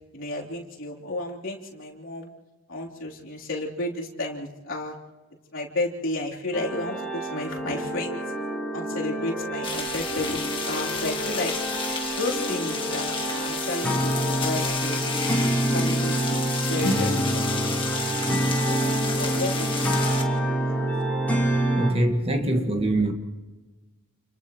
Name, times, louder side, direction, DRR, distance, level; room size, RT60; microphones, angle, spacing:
voice 1, 0.1-2.3 2.7-4.9 5.5-8.2 8.7-10.4 10.7-11.5 12.2-15.0 15.4-17.2 17.5-17.8 18.6-20.0 20.7-20.8, left 2 dB, 65° left, 3.5 m, -32 dB
sound 1, 6.5-21.9, right 1 dB, 5° left, 4.9 m, -27 dB
sound 2, 9.6-20.2, left 5 dB, 25° left, 1.8 m, -32 dB
voice 2, 21.7-23.1, right 1 dB, 25° right, 1.7 m, -23 dB
29.5 x 29.5 x 3.1 m
head